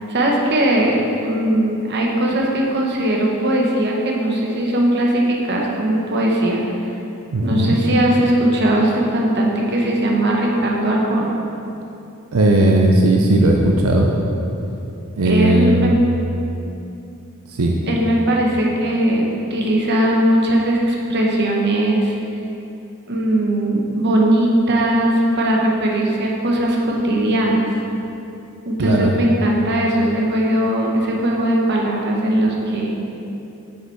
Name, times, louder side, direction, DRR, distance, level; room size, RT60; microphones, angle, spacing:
voice 1, 0.1-6.6 7.4-11.3 15.2-15.9 17.9-22.2 23.1-27.7 28.6-33.0, right 1 dB, 55° right, -2 dB, 1.0 m, -19 dB
voice 2, 7.3-7.8 12.3-14.1 15.2-15.9 17.5-17.8 28.8-29.1, right 1 dB, 85° right, 0 dB, 0.6 m, -16 dB
6.3 x 5.7 x 4.5 m, 2.8 s
head